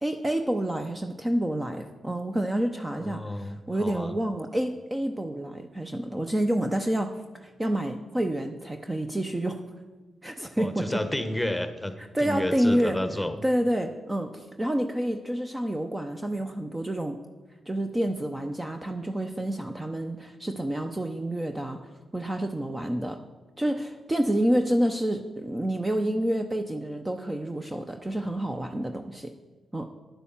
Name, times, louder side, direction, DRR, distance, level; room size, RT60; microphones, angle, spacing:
voice 1, 0.0-7.1 7.4-9.6 10.2-11.0 12.1-13.0 13.4-17.2 17.7-21.8 22.1-23.2 23.6-29.3 29.7-29.9, right 1 dB, 20° right, 6 dB, 0.8 m, -28 dB
voice 2, 3.0-4.1 10.6-13.4, left 1 dB, 5° left, 9 dB, 1.3 m, -31 dB
9.3 x 8.4 x 7.3 m, 1.3 s
supercardioid pair, 50°, 0 cm